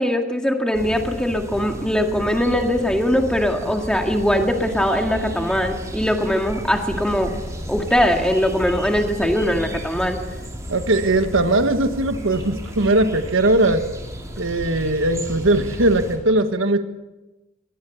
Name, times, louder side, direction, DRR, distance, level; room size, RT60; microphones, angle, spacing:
voice 1, 0.0-7.3 7.7-10.2, equal, 5° left, 3 dB, 2.1 m, -21 dB
sound 1, 0.7-16.2, equal, 15° right, 3.4 m, -33 dB
voice 2, 10.7-13.9 14.4-16.8, right 2 dB, 80° right, 8 dB, 1.5 m, -19 dB
23.5 x 19.5 x 7.1 m, 1.1 s
head